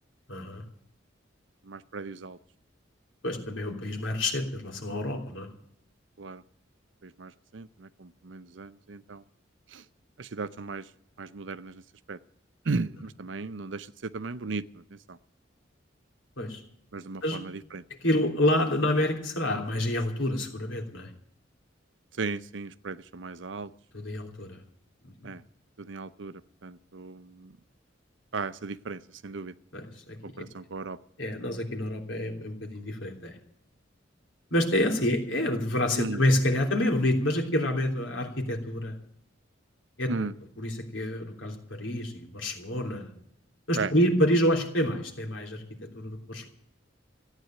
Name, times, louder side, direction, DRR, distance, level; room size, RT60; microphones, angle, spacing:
voice 1, 0.3-0.6 3.2-5.5 16.4-16.6 17.2-17.4 18.0-21.1 23.9-24.6 29.7-30.1 31.2-33.3 34.5-38.9 40.0-40.3 40.6-43.1 43.7-45.6 45.9-46.5, left 1 dB, 85° left, 2 dB, 3.2 m, -28 dB
voice 2, 1.6-2.4 6.2-6.4 7.0-9.2 9.7-9.8 10.2-10.9 11.2-11.8 12.1-12.2 12.7-15.2 16.9-17.8 22.2-23.7 25.2-25.4 25.8-27.5 28.3-29.5 30.2-31.0 36.0-36.2 40.1-40.3 43.7-43.9, right 4 dB, 70° right, 15 dB, 0.7 m, -36 dB
15.0 x 9.2 x 9.0 m, 0.69 s
head